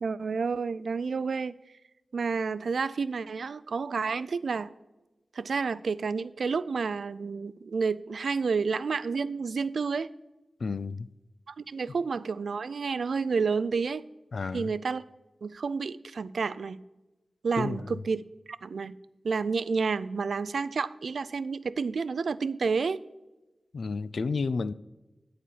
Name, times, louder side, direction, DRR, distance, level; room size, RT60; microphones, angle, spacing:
voice 1, 0.0-1.5 2.1-4.7 5.3-10.1 11.5-14.0 14.5-15.0 15.4-16.8 17.4-18.2 18.6-19.0 19.2-23.0, right 5 dB, 80° right, 0.3 m, -30 dB
voice 2, 10.6-11.1 14.3-14.7 17.6-17.9 23.7-24.7, left 4 dB, 75° left, 0.3 m, -31 dB
11.0 x 4.2 x 7.0 m
cardioid pair, 60°, 0 cm